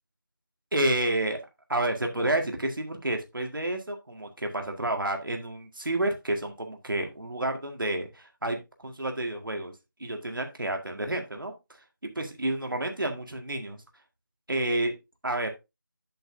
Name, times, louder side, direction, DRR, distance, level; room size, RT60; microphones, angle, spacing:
voice 1, 0.7-1.4 1.7-9.7 10.0-11.8 12.2-13.8 14.5-14.9 15.2-15.5, right 1 dB, 75° right, 4 dB, 1.8 m, -30 dB
7.8 x 7.4 x 2.7 m, 0.24 s
figure-of-eight pair, 175°, 11 cm